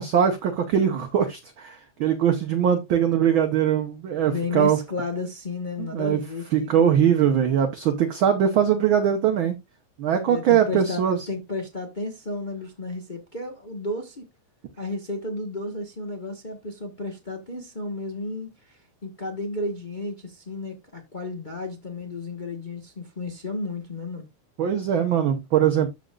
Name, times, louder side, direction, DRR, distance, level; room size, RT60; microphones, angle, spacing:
voice 1, 0.0-4.8 5.8-6.2 6.5-9.6 10.0-11.2 24.6-25.9, right 9 dB, 65° right, 1.2 m, -21 dB
voice 2, 4.3-6.9 10.2-11.0 11.3-14.2 14.8-24.3, left 2 dB, 65° left, 0.4 m, -33 dB
13.0 x 5.1 x 2.4 m
omnidirectional pair, 3.4 m